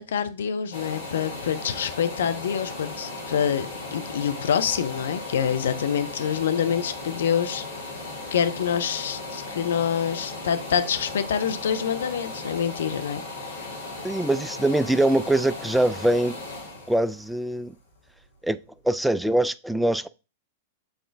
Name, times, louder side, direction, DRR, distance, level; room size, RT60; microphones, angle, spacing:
voice 1, 0.0-7.6 8.3-13.7, left 8 dB, 70° left, 0.7 m, -26 dB
sound 1, 0.7-18.4 18.9-19.0, left 2 dB, 85° left, 2.6 m, -37 dB
voice 2, 14.0-16.4 16.9-17.7 18.4-18.6 18.8-20.1, right 1 dB, 5° right, 0.4 m, -23 dB
8.0 x 3.8 x 3.4 m
figure-of-eight pair, 100°, 0 cm